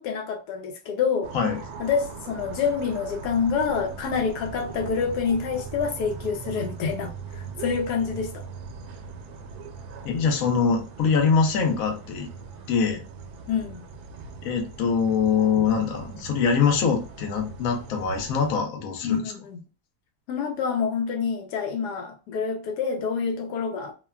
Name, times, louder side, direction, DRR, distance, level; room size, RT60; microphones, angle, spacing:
voice 1, 0.0-1.3 1.8-8.5 13.5-13.8 15.6-15.7 19.0-19.6 20.3-23.9, left 6 dB, 85° left, 1.2 m, -27 dB
sound 1, 1.2-18.6, right 5 dB, 75° right, 1.1 m, -40 dB
voice 2, 10.0-12.3 12.7-13.0 14.4-19.3, left 6 dB, 65° left, 1.0 m, -23 dB
3.3 x 2.2 x 2.2 m
omnidirectional pair, 1.7 m